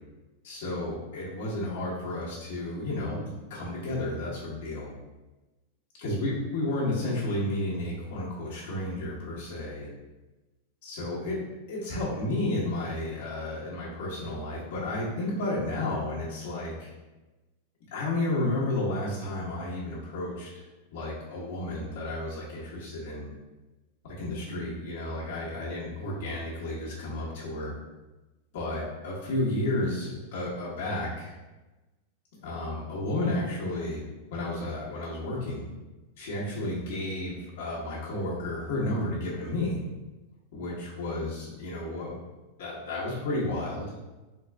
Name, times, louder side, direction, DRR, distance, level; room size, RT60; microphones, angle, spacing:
voice 1, 0.4-4.9 6.0-9.9 10.8-11.4 11.7-16.9 17.9-20.6 20.9-23.3 24.0-27.7 28.5-31.3 32.4-34.0 34.3-35.6 36.2-39.8 40.5-42.2 42.6-43.9, left 1 dB, 55° left, -7 dB, 1.3 m, -32 dB
3.8 x 2.5 x 3.4 m, 1.1 s
supercardioid pair, 175°, 0 cm